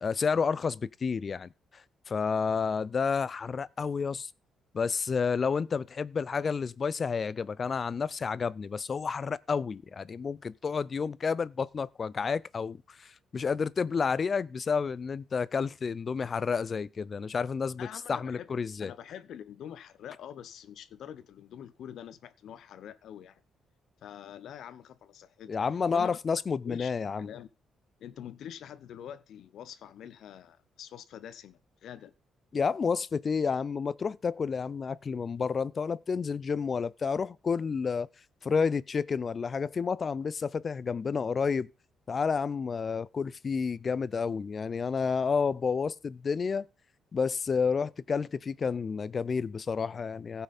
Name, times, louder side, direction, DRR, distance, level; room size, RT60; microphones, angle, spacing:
voice 1, 0.0-4.3 4.7-18.9 25.5-27.3 32.5-38.1 38.4-41.7 42.1-46.7 47.1-50.4, left 5 dB, 40° left, 0.4 m, -30 dB
voice 2, 17.8-18.5 18.8-23.4 24.0-25.6 25.9-26.2 26.6-27.5 28.0-32.1, left 9 dB, 75° left, 0.8 m, -45 dB
16.0 x 5.7 x 4.1 m
cardioid pair, 100°, 0 cm